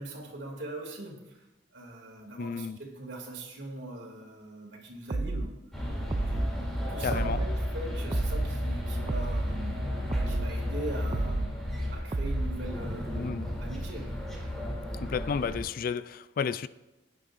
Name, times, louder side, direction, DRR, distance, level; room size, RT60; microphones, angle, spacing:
voice 1, 0.0-1.5 1.7-5.6 6.1-11.5 11.9-14.2, right 1 dB, 70° right, 2.5 m, -41 dB
voice 2, 2.4-2.8 7.0-7.4 13.1-13.5 15.0-16.7, left 6 dB, 50° left, 0.3 m, -32 dB
sound 1, 5.1-5.5 6.1-6.5 7.1-7.5 8.1-8.5 9.1-9.5 10.1-10.5 11.1-11.5 12.1-12.5, right 2 dB, 25° right, 0.3 m, -31 dB
sound 2, 5.7-15.6, equal, ahead, 2.8 m, -33 dB
17.0 x 9.4 x 2.5 m
head